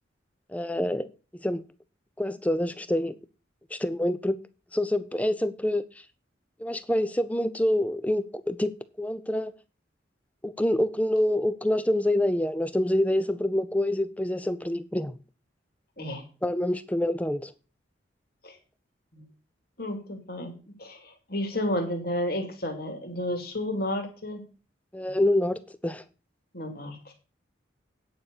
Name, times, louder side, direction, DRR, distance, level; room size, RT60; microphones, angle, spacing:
voice 1, 0.5-1.1 1.4-1.6 2.2-3.2 3.7-4.4 4.7-5.8 6.6-8.7 9.0-9.5 10.4-15.1 16.4-17.5 24.9-26.0, left 1 dB, 10° left, 0.5 m, -26 dB
voice 2, 19.8-24.4 26.5-27.1, left 1 dB, 55° left, 2.4 m, -32 dB
9.5 x 5.6 x 6.6 m
head